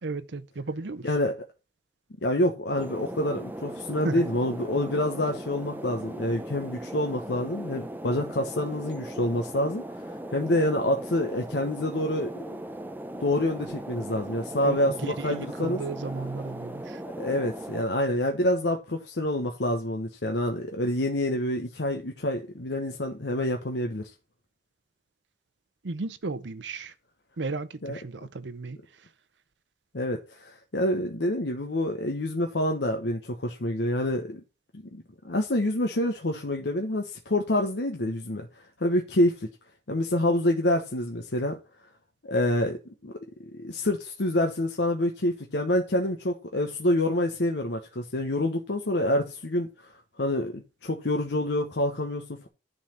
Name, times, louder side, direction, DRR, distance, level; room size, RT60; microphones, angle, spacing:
voice 1, 0.0-1.1 4.0-4.2 14.6-17.0 25.8-26.9 27.4-29.1, right 3 dB, 80° right, 0.7 m, -34 dB
voice 2, 2.2-12.6 13.2-15.8 17.2-24.1 27.8-28.0 29.9-34.4 34.7-38.5 38.8-39.5 39.9-41.6 42.2-42.8 43.0-43.1 43.5-49.9 50.2-52.5, left 1 dB, 70° left, 1.0 m, -27 dB
sound 1, 2.7-17.8, right 1 dB, 10° right, 0.7 m, -38 dB
10.5 x 4.1 x 7.1 m
head